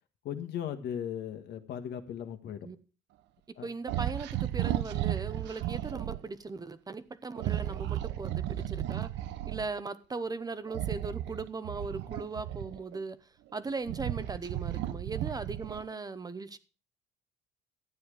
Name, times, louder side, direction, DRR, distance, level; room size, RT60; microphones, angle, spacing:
voice 1, 0.2-2.6 3.6-3.7, left 9 dB, 70° left, 1.7 m, -37 dB
voice 2, 3.6-9.1 9.5-13.2 13.5-16.6, right 4 dB, 20° right, 0.8 m, -38 dB
sound 1, 3.9-6.2 7.3-9.7 10.7-13.0 13.6-15.9, right 13 dB, 90° right, 0.9 m, -34 dB
12.5 x 9.2 x 4.9 m
cardioid pair, 130°, 18 cm